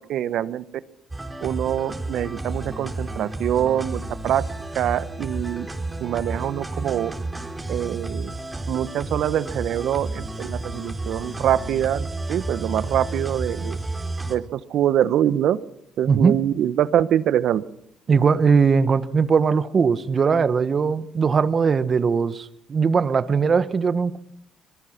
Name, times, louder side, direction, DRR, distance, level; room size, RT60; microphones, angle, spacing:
voice 1, 0.1-0.6 1.4-4.4 4.8-5.7 6.0-7.1 7.7-8.3 8.7-13.8 14.3-15.6 16.0-17.6, right 11 dB, 70° right, 15 dB, 1.1 m, -24 dB
sound 1, 1.1-14.4, right 2 dB, 15° right, 4.1 m, -31 dB
voice 2, 16.1-16.4 18.1-24.2, right 5 dB, 45° right, 13 dB, 1.4 m, -20 dB
26.5 x 22.0 x 5.9 m, 0.70 s
cardioid pair, 80°, 0 cm